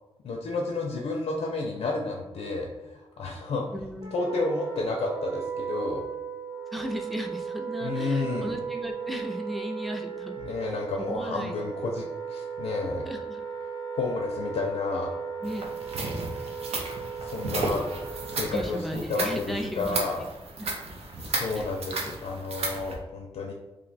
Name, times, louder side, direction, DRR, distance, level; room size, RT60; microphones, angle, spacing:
voice 1, 0.2-3.7 4.1-6.0 7.8-8.6 10.4-13.0 13.9-15.1 17.2-20.2 21.2-23.5, left 3 dB, 90° left, 0 dB, 0.4 m, -31 dB
voice 2, 3.7-4.4 6.7-10.4 10.9-11.7 13.1-13.4 15.4-15.7 18.5-20.0 20.6-20.7 21.6-21.7 22.0-22.1, equal, ahead, 2 dB, 0.4 m, -36 dB
Wind instrument woodwind instrument, 4.0-18.9, right 6 dB, 45° right, 0.9 m, -36 dB
sound 1, 15.4-23.0, right 2 dB, 85° right, 0.5 m, -34 dB
2.6 x 2.1 x 3.9 m, 1.1 s
wide cardioid pair, 130°, 10 cm